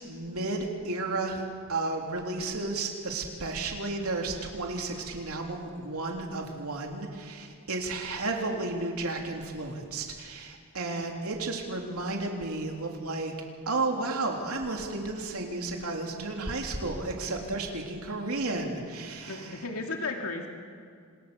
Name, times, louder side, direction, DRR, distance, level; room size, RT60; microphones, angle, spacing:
voice 1, 0.0-1.4 1.7-13.3 13.7-19.4, right 2 dB, 70° right, 1 dB, 3.6 m, -33 dB
voice 2, 19.3-20.5, left 3 dB, 75° left, 2 dB, 2.4 m, -34 dB
28.5 x 27.5 x 7.1 m, 2.2 s
head